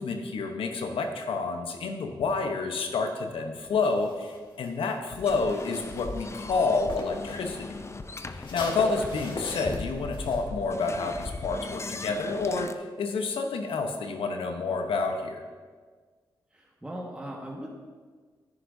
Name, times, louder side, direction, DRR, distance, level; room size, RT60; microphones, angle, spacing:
voice 1, 0.0-7.7 8.3-15.4, left 4 dB, 85° left, 4 dB, 0.9 m, -29 dB
sound 1, 3.8-7.3 7.6-10.4, left 2 dB, 65° left, 1.7 m, -40 dB
sound 2, 5.2-12.7, left 3 dB, 30° left, 0.5 m, -38 dB
voice 2, 16.5-17.7, right 1 dB, 10° right, -2 dB, 1.5 m, -39 dB
10.0 x 9.9 x 2.7 m, 1.5 s
cardioid pair, 55°, 9 cm